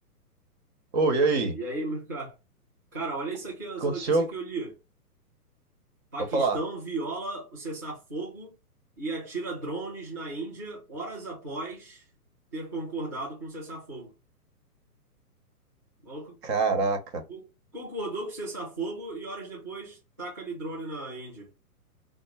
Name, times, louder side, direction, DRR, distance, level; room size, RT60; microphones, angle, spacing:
voice 1, 0.9-1.6 3.8-4.3 6.3-6.6 16.4-17.2, right 3 dB, 45° right, 1.1 m, -24 dB
voice 2, 1.5-2.3 2.9-4.8 6.1-8.5 9.0-12.1 12.5-14.1 16.0-16.4 17.3-17.4 17.7-21.5, right 2 dB, 15° right, 0.3 m, -35 dB
4.3 x 2.0 x 3.4 m
hypercardioid pair, 125°, 46 cm